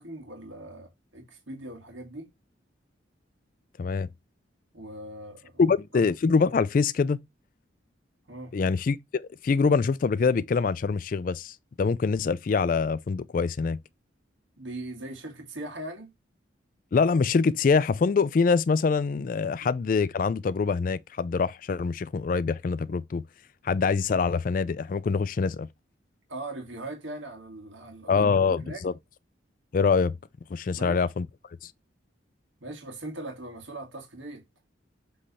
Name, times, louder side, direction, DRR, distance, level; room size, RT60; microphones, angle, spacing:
voice 1, 0.0-2.3 4.7-6.0 8.3-8.5 14.6-16.1 26.3-28.8 30.7-31.0 32.6-34.4, right 1 dB, 85° right, 1.9 m, -40 dB
voice 2, 3.8-4.1 5.6-7.2 8.5-13.8 16.9-23.2 23.6-25.7 28.1-28.9 29.7-30.2 30.5-31.3 31.6-31.7, left 5 dB, 45° left, 0.3 m, -24 dB
7.5 x 3.3 x 4.1 m
head